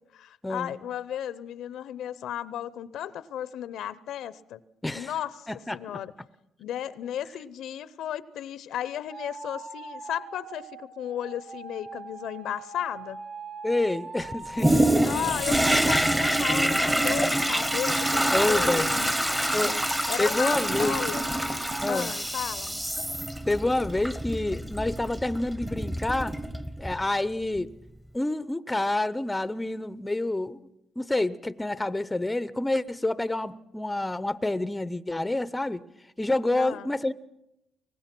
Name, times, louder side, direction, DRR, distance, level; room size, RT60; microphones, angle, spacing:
voice 1, 0.1-4.6 4.9-5.5 5.7-6.1 6.6-13.2 15.0-21.3 21.9-22.9 36.5-36.9, left 10 dB, 80° left, 17 dB, 0.7 m, -35 dB
voice 2, 5.5-5.8 13.6-14.8 18.3-18.9 19.5-19.7 20.2-21.0 21.8-22.1 23.5-26.3 26.8-27.7 28.1-30.6 31.0-35.8 36.2-37.1, left 2 dB, 10° left, 16 dB, 0.7 m, -28 dB
sound 1, 9.1-16.7 17.3-20.0 20.5-21.9, right 3 dB, 75° right, 5.0 m, -41 dB
Toilet flush, 14.6-27.0 27.6-27.7, right 1 dB, 10° right, 1.1 m, -26 dB
23.0 x 19.0 x 6.0 m, 0.87 s
cardioid pair, 90°, 0 cm